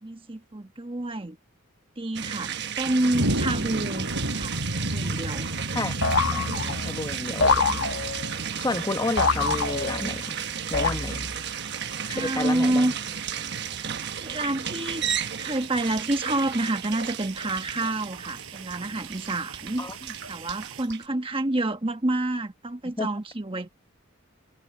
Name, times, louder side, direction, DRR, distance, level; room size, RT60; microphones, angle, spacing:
voice 1, 0.0-1.4 2.0-5.5 12.1-12.9 14.1-15.0 15.4-19.9 20.3-23.7, right 2 dB, 25° right, 1.2 m, -28 dB
sound 1, 2.2-21.1, right 8 dB, 55° right, 1.2 m, -34 dB
sound 2, 3.1-20.8, right 1 dB, 75° right, 7.9 m, -36 dB
voice 2, 5.7-7.7 8.6-10.4 10.7-11.3 12.1-12.9 19.8-20.0 23.0-23.1, left 2 dB, 20° left, 1.0 m, -31 dB
sound 3, 6.0-7.0 7.4-8.4 9.2-10.2 10.7-11.5, left 4 dB, 60° left, 1.2 m, -25 dB
head